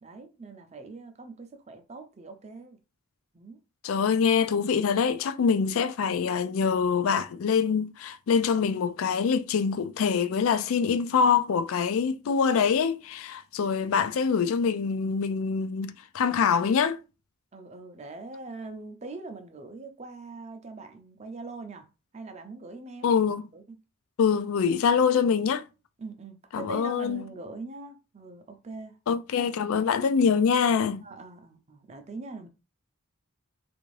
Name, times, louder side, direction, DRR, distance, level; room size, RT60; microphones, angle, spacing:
voice 1, 0.0-2.8 3.3-3.6 13.6-13.8 17.5-21.9 22.1-23.2 23.5-23.8 26.0-29.0 29.3-29.5 31.0-32.5, right 3 dB, 30° right, 0.5 m, -42 dB
voice 2, 3.8-17.0 23.0-23.4 24.2-25.6 26.5-27.2 29.1-31.0, left 6 dB, 70° left, 0.3 m, -24 dB
3.4 x 2.5 x 3.2 m
head